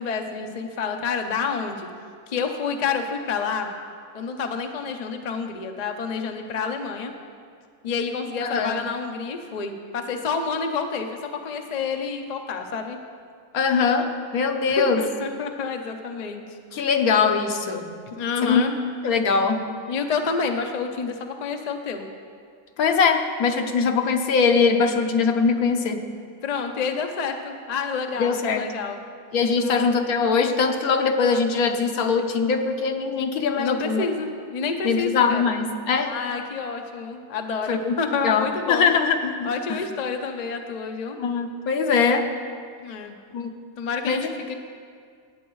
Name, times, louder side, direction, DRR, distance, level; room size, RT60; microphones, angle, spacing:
voice 1, 0.0-1.9 2.3-3.7 4.1-7.1 7.8-13.0 14.7-16.6 18.2-18.7 19.9-22.1 26.4-29.0 29.4-29.7 33.5-35.5 36.0-38.9 39.4-41.2 42.8-43.2 43.8-44.5, left 5 dB, 50° left, 4 dB, 0.5 m, -29 dB
voice 2, 8.4-8.8 13.5-15.1 16.7-17.9 18.4-18.6 19.0-19.7 22.8-26.1 28.2-28.7 29.3-34.1 34.8-36.1 37.7-37.9 38.2-39.8 41.2-42.3 43.3-43.5 44.1-44.3, left 5 dB, 70° left, 6 dB, 1.2 m, -22 dB
16.5 x 8.9 x 3.1 m, 2.2 s
omnidirectional pair, 1.7 m